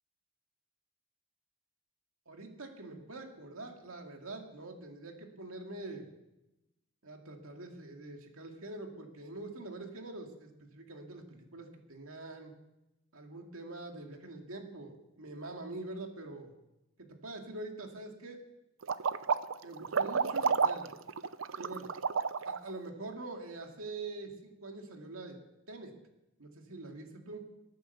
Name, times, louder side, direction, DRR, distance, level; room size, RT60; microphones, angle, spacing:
voice 1, 2.3-6.1 7.0-12.5 13.1-16.5 17.0-18.4 19.6-20.9 21.6-21.9 22.4-25.4 25.7-26.0 26.4-27.5, right 2 dB, 90° right, 3 dB, 2.4 m, -45 dB
sound 1, 18.8-22.7, right 6 dB, 70° right, 0.6 m, -30 dB
19.5 x 9.2 x 6.9 m, 0.95 s
head